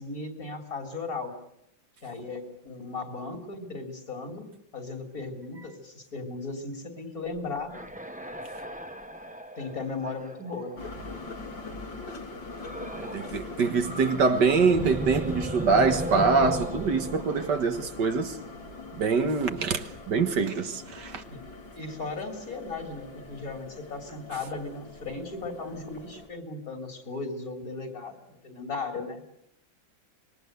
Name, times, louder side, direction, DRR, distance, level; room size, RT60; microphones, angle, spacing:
voice 1, 0.0-1.4 2.0-4.5 4.7-7.8 9.6-10.8 21.3-21.4 21.8-29.2, left 3 dB, 50° left, 3.9 m, -36 dB
sound 1, 7.4-11.5 12.6-13.4 13.6-18.5, right 1 dB, 5° right, 1.0 m, -37 dB
sound 2, 10.8-26.3, left 3 dB, 80° left, 3.8 m, -42 dB
voice 2, 12.9-18.4 18.9-21.2, right 4 dB, 65° right, 2.0 m, -24 dB
25.5 x 22.5 x 8.0 m
omnidirectional pair, 2.0 m